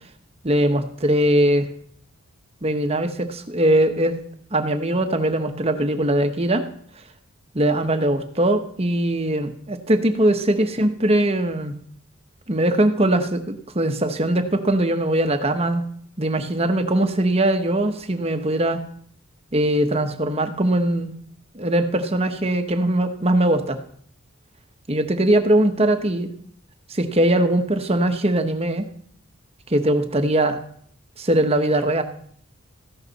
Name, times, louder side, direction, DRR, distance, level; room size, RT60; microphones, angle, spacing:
voice 1, 0.4-1.7 2.6-4.2 4.5-6.6 7.5-11.8 12.5-15.8 16.2-18.8 19.5-21.1 21.5-23.8 24.9-26.3 26.9-28.9 29.7-30.6 31.2-32.0, right 1 dB, 30° right, 7 dB, 1.0 m, -21 dB
14.5 x 11.5 x 4.1 m, 0.62 s
head